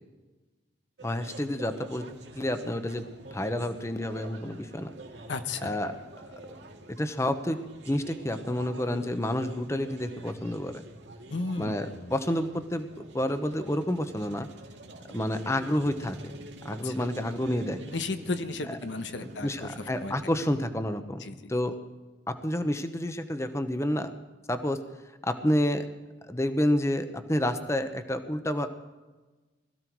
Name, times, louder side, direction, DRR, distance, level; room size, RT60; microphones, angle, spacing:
voice 1, 1.0-2.1 2.3-4.9 5.6-6.3 6.9-7.6 7.9-10.8 11.6-14.5 15.1-16.3 16.6-17.8 19.2-21.2 21.5-21.7 22.3-24.1 24.5-24.8 25.2-25.9 26.3-28.7, left 1 dB, 15° left, 9 dB, 0.9 m, -29 dB
sound 1, 1.0-20.5, right 1 dB, 80° right, 2.1 m, -46 dB
voice 2, 5.3-5.8 11.3-12.1 16.8-16.9 17.9-20.1 21.2-21.4, left 3 dB, 85° left, 9 dB, 1.0 m, -34 dB
21.0 x 14.5 x 4.7 m, 1.2 s
head